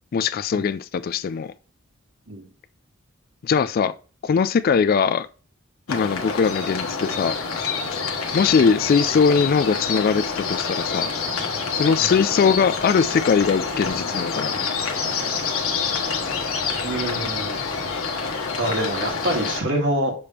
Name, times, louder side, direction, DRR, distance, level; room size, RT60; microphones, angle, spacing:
voice 1, 0.1-1.5 3.4-3.9 4.2-5.3 5.9-7.4 8.3-11.1 11.7-14.7, left 6 dB, 45° left, 0.3 m, -21 dB
sound 1, 5.9-19.6, left 5 dB, 90° left, 1.3 m, -27 dB
voice 2, 16.8-17.6 18.6-20.1, right 1 dB, 60° right, 1.9 m, -25 dB
6.8 x 3.5 x 4.3 m
head